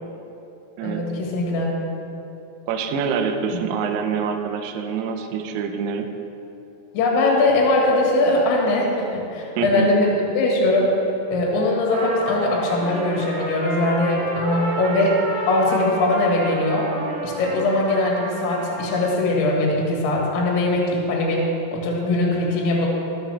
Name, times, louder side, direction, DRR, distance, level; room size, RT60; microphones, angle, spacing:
voice 1, 0.8-1.7 3.5-3.6 6.9-10.9 11.3-15.2 15.5-16.9 17.2-22.9, left 2 dB, 70° left, -2 dB, 3.8 m, -21 dB
voice 2, 2.7-6.1 9.6-9.9, right 6 dB, 85° right, 4 dB, 2.3 m, -25 dB
Trumpet, 11.9-19.1, right 1 dB, 70° right, 4.8 m, -31 dB
22.0 x 7.3 x 3.4 m, 2.9 s
omnidirectional pair, 5.8 m